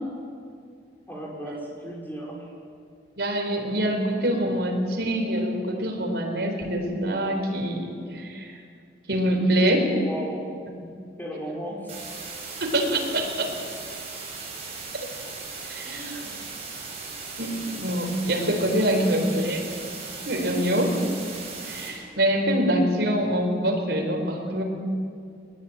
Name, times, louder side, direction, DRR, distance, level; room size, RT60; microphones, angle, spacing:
voice 1, 1.1-2.5 10.0-10.9 11.2-12.0 15.8-16.5 18.8-19.1, equal, 10° left, -3 dB, 5.4 m, -36 dB
voice 2, 3.2-8.5 9.1-9.9 12.6-13.5 15.6-16.1 17.4-19.6 20.2-20.9 21.6-24.6, right 1 dB, 70° right, 2 dB, 4.6 m, -25 dB
sound 1, 11.9-21.9, right 4 dB, 35° right, 7.5 m, -38 dB
20.5 x 20.5 x 8.9 m, 2.2 s
head